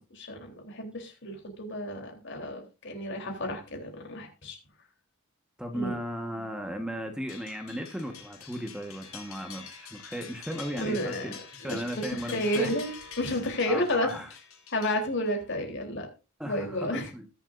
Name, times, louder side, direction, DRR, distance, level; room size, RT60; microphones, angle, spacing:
voice 1, 0.0-4.6 5.7-6.0 10.8-11.3 11.6-11.8 12.1-14.1 14.7-16.1 16.4-17.1, left 1 dB, 60° left, 3 dB, 3.5 m, -31 dB
voice 2, 5.6-11.4 11.6-12.7 13.7-14.3 16.4-17.3, equal, 5° right, 4 dB, 1.3 m, -36 dB
sound 1, 7.3-15.5, left 6 dB, 80° left, 6.0 m, -46 dB
20.5 x 7.2 x 2.6 m, 0.31 s
head